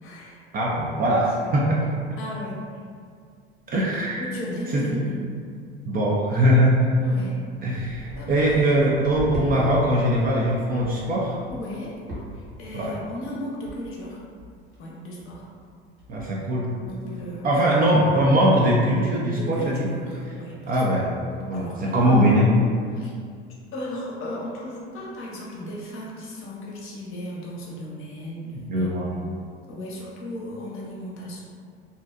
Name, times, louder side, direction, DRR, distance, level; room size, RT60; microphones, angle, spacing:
voice 1, 0.0-0.4 1.4-1.5 2.2-2.6 4.2-5.2 7.0-7.4 8.1-8.3 11.5-11.9 12.3-14.2 14.8-15.4 16.8-17.5 19.4-20.8 21.5-22.2 22.9-23.1 23.7-29.4 29.7-31.4, left 1 dB, 40° left, -4 dB, 0.7 m, -35 dB
voice 2, 0.5-1.8 3.7-4.2 4.7-5.0 5.9-6.9 7.6-11.4 12.7-12.9 16.1-16.7 17.0-17.1 17.4-19.9 20.7-21.1 21.5-22.5 28.7-29.1, equal, 30° right, -4 dB, 0.3 m, -21 dB
sound 1, 4.9-5.0 5.2-5.5 6.1-6.2 6.9-7.0 7.2-9.6 9.9-10.4 10.8-11.0 11.5-11.8 12.1-12.5 12.8-13.2 13.7-13.8 14.0-14.1 14.4-14.8 15.2-15.4 15.7-15.8 16.0-16.4 16.8-16.9, right 2 dB, 75° right, 0.9 m, -38 dB
2.6 x 2.0 x 2.4 m, 2.1 s
hypercardioid pair, 70°, 32 cm